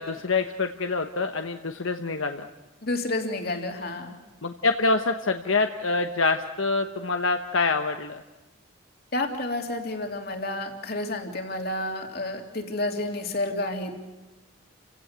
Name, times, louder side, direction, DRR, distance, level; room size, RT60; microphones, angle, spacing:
voice 1, 0.0-2.5 4.4-8.2, left 3 dB, 75° left, 6 dB, 1.2 m, -26 dB
voice 2, 2.8-4.2 9.1-13.9, left 2 dB, 50° left, 4 dB, 3.2 m, -30 dB
30.0 x 16.5 x 8.2 m, 1.1 s
head